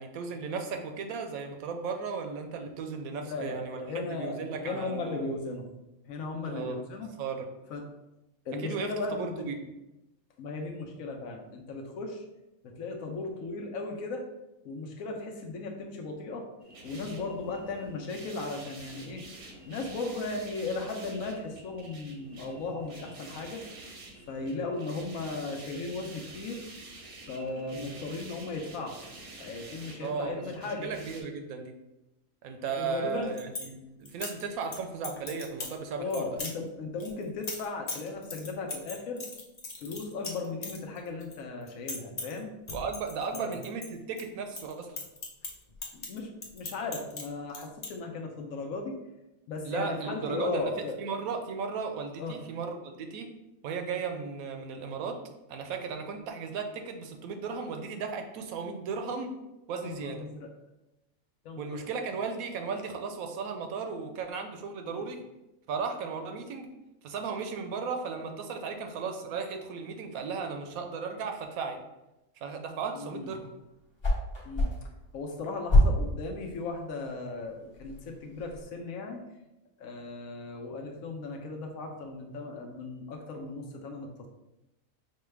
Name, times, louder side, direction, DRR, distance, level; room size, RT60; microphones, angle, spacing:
voice 1, 0.0-5.2 6.4-6.8 7.2-7.5 8.6-9.5 30.0-30.4 30.8-31.7 32.4-36.3 42.7-45.0 49.6-50.7 51.0-53.3 53.6-55.2 55.5-59.3 59.7-60.3 61.6-65.2 65.7-66.7 67.0-71.8 72.4-73.5, right 5 dB, 75° right, 5 dB, 1.0 m, -35 dB
voice 2, 3.1-5.7 6.1-7.1 7.7-7.8 8.4-9.4 10.4-12.2 12.6-14.3 14.6-16.5 16.8-19.2 19.6-23.6 24.3-26.6 27.3-29.0 29.4-30.9 32.8-33.4 36.0-39.2 39.8-42.5 43.3-43.5 45.9-48.9 49.5-51.0 52.2-52.4 59.8-60.5 61.4-61.8 64.8-65.0 72.9-73.3 74.4-74.7 75.1-79.2 79.8-84.3, left 3 dB, 75° left, 2 dB, 1.0 m, -36 dB
sound 1, 16.6-31.2, right 2 dB, 50° right, 0.8 m, -48 dB
sound 2, 33.1-33.7 34.1-34.8 35.0-35.8 36.1-36.5 37.0-41.3 41.6-42.4 42.7-44.2 44.5-47.2 47.5-47.9, left 3 dB, 45° left, 0.5 m, -39 dB
sound 3, 73.6-78.6, left 1 dB, 25° left, 0.8 m, -29 dB
5.4 x 2.2 x 3.2 m, 0.96 s
omnidirectional pair, 1.5 m